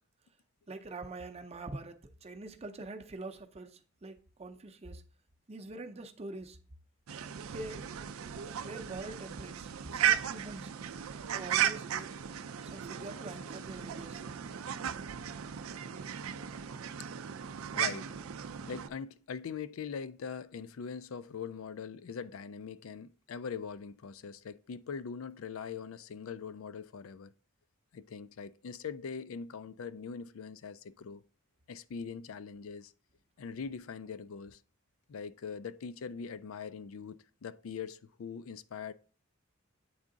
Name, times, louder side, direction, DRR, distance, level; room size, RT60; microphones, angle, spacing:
voice 1, 0.7-5.0 5.5-6.6 7.5-7.8 8.6-10.7 11.2-12.2 12.6-14.2, right 2 dB, 30° right, 0.6 m, -45 dB
sound 1, 7.1-18.9, right 9 dB, 85° right, 0.4 m, -36 dB
voice 2, 17.7-18.2 18.7-27.3 27.9-31.2 31.7-32.9 33.4-34.6 35.1-38.9, left 6 dB, 75° left, 0.4 m, -42 dB
8.6 x 3.6 x 3.8 m
head